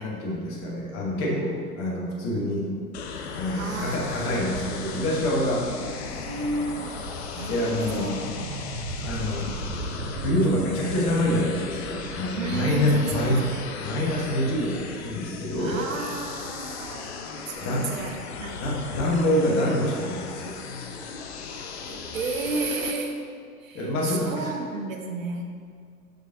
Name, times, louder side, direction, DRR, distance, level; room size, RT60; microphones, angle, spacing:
voice 1, 0.0-2.7 3.3-5.7 6.1-6.2 7.5-8.2 9.0-9.5 10.2-13.5 13.8-15.8 17.6-18.0 18.6-20.6 23.7-24.5, left 1 dB, 30° left, -3 dB, 1.4 m, -26 dB
sound 1, 2.9-22.9, left 5 dB, 45° left, 0.6 m, -37 dB
voice 2, 3.5-4.6 6.1-8.6 12.3-13.7 15.6-17.1 17.5-18.7 21.9-23.3 23.6-25.4, right 3 dB, 55° right, 3 dB, 0.8 m, -33 dB
sound 2, 4.5-13.3, right 3 dB, 20° right, 0.8 m, -39 dB
6.2 x 5.2 x 3.9 m, 2.2 s
figure-of-eight pair, 110°, 46 cm